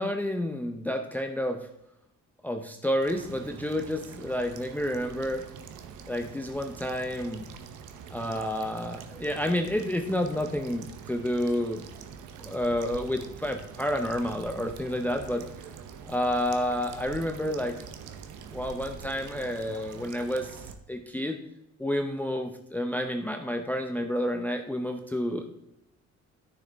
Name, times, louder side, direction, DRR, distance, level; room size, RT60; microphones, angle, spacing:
voice 1, 0.0-1.7 2.4-5.4 6.1-7.5 8.1-11.8 12.4-15.4 16.0-17.8 18.5-21.4 21.8-25.6, left 1 dB, 5° left, 5 dB, 0.6 m, -30 dB
sound 1, 3.0-20.7, right 7 dB, 85° right, 0.9 m, -45 dB
9.7 x 6.6 x 3.4 m, 0.82 s
cardioid pair, 90°, 30 cm